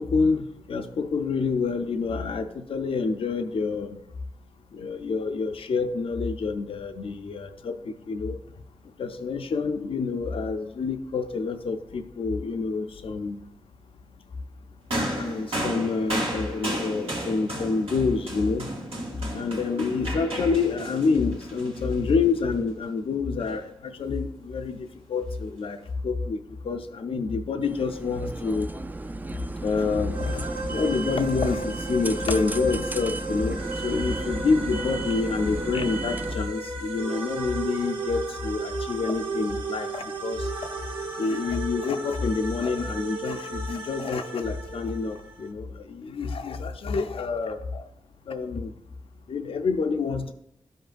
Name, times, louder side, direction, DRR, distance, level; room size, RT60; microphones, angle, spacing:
voice 1, 0.0-4.0 4.7-8.4 9.0-13.4 15.1-18.7 19.3-28.7 29.6-40.5 41.2-47.8 48.3-48.7 49.3-50.3, left 4 dB, 75° left, 7 dB, 0.4 m, -27 dB
sound 1, 14.9-22.4 23.4-23.5, right 1 dB, 85° right, 2.1 m, -33 dB
sound 2, 27.6-36.4, right 2 dB, 20° right, 0.4 m, -34 dB
sound 3, 30.1-45.5, right 3 dB, 65° right, 1.3 m, -35 dB
12.5 x 5.2 x 2.5 m, 0.79 s
wide cardioid pair, 70°, 10 cm